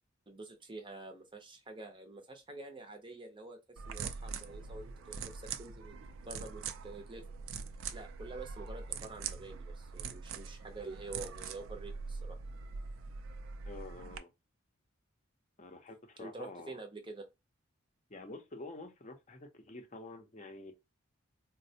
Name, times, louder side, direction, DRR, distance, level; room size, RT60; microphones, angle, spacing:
voice 1, 0.3-5.9 6.3-7.3 7.9-12.4 16.2-17.3, right 2 dB, 25° right, 0.6 m, -47 dB
sound 1, 3.8-14.2, right 5 dB, 70° right, 0.4 m, -43 dB
voice 2, 13.6-14.3 15.6-16.8 18.1-20.7, left 2 dB, 35° left, 0.6 m, -48 dB
4.1 x 2.1 x 2.7 m
head